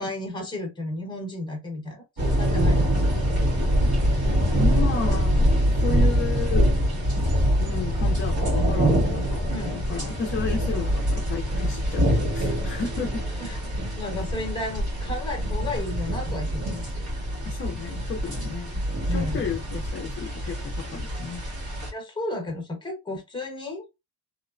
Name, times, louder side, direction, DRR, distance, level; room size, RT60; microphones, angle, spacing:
voice 1, 0.0-2.9 9.5-9.7 13.4-17.1 19.1-19.5 21.9-23.9, left 2 dB, 10° left, 0.9 m, -33 dB
sound 1, 2.2-21.9, equal, 65° right, 1.7 m, -24 dB
voice 2, 4.5-6.7 7.2-7.3 7.6-9.4 9.7-13.2 17.4-18.8 19.1-21.4, left 5 dB, 35° left, 0.4 m, -33 dB
3.0 x 2.0 x 2.4 m
cardioid pair, 150°, 40 cm